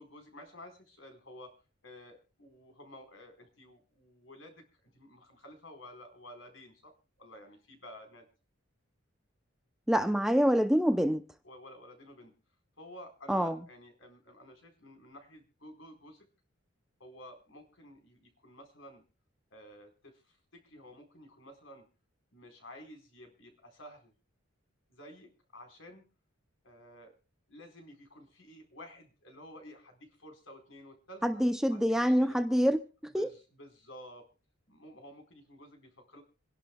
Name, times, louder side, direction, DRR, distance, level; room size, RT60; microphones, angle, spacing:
voice 1, 0.0-1.6 1.8-8.3 11.4-12.3 12.8-16.3 17.0-19.0 19.5-21.8 22.3-24.1 24.9-26.0 26.6-27.1 27.5-31.4 31.7-32.4 33.1-34.3 34.7-36.2, left 1 dB, 70° left, 4.5 m, -52 dB
voice 2, 9.9-11.2 13.3-13.6 31.2-32.8 33.1-33.3, equal, ahead, 0.6 m, -26 dB
27.0 x 11.5 x 2.3 m
head